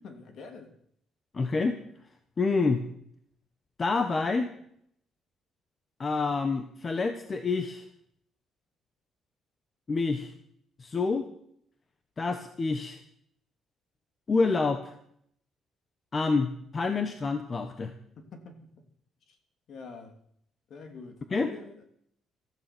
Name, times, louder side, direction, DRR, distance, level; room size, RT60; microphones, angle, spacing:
voice 1, 0.0-0.7 18.2-18.7 19.3-19.4 19.7-20.1 20.7-21.8, left 4 dB, 55° left, 6 dB, 3.0 m, -46 dB
voice 2, 1.3-1.8 2.4-2.8 3.8-4.5 6.0-7.8 9.9-10.3 10.8-11.3 12.2-13.0 14.3-14.9 16.1-17.9 21.3-21.5, left 4 dB, 25° left, 8 dB, 1.2 m, -27 dB
16.5 x 14.0 x 6.1 m, 0.69 s
cardioid pair, 150°, 0 cm